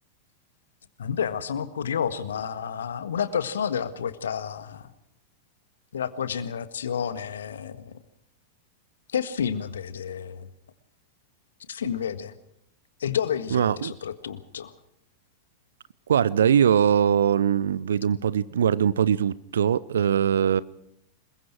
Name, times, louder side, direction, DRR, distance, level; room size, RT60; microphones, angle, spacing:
voice 1, 1.0-4.9 5.9-7.9 9.1-10.5 11.7-12.3 13.0-14.7, left 7 dB, 65° left, 1.6 m, -30 dB
voice 2, 13.5-13.9 16.1-20.6, right 8 dB, 65° right, 0.7 m, -21 dB
27.5 x 22.0 x 4.6 m
figure-of-eight pair, 90°, 0 cm